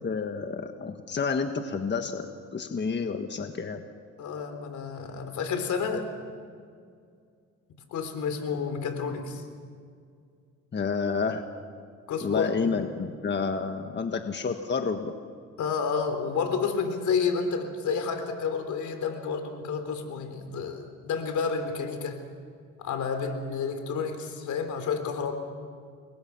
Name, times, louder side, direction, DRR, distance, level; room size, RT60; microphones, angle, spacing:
voice 1, 0.0-2.3 2.5-3.8 10.7-11.5 12.2-15.1, left 5 dB, 35° left, 6 dB, 1.5 m, -29 dB
voice 2, 4.2-6.1 7.9-9.4 12.1-12.9 15.6-22.2 22.8-25.3, left 5 dB, 75° left, 7 dB, 3.8 m, -30 dB
29.5 x 22.0 x 6.0 m, 2.2 s
cardioid pair, 90°, 30 cm